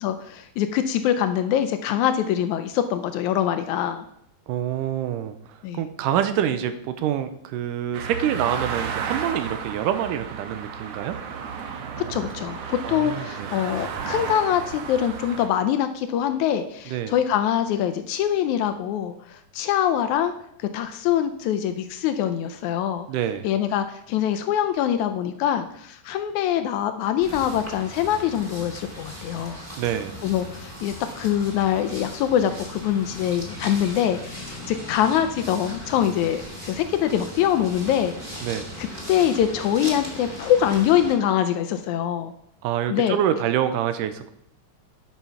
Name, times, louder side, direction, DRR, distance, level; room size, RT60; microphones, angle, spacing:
voice 1, 0.0-4.1 5.6-5.8 12.0-20.3 20.6-23.1 23.4-29.6 30.2-38.5 38.8-42.3 42.9-43.2, left 10 dB, 75° left, 9 dB, 1.8 m, -24 dB
voice 2, 4.5-11.2 12.8-13.5 16.9-17.1 23.1-23.5 29.8-30.2 38.4-38.7 42.6-44.3, right 10 dB, 85° right, 10 dB, 2.3 m, -26 dB
sound 1, 7.9-15.5, right 6 dB, 65° right, 1.7 m, -33 dB
sound 2, 27.2-41.1, left 1 dB, 20° right, 2.0 m, -38 dB
10.5 x 5.9 x 5.6 m, 0.73 s
omnidirectional pair, 3.8 m